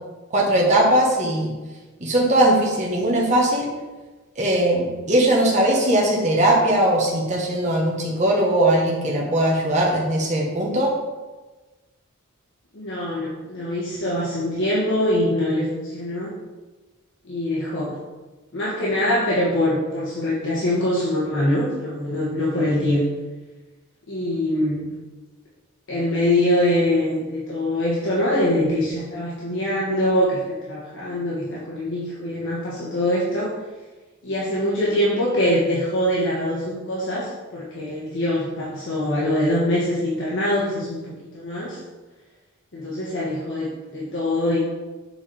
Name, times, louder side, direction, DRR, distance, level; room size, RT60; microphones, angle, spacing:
voice 1, 0.3-1.5 2.0-3.7 4.4-10.9, right 1 dB, 35° right, -3 dB, 1.3 m, -19 dB
voice 2, 12.7-16.3 17.2-18.0 18.5-23.0 24.1-25.0 25.9-33.6 34.2-41.8 42.7-44.6, left 1 dB, 60° left, -7 dB, 1.5 m, -23 dB
7.3 x 4.7 x 4.3 m, 1.2 s
head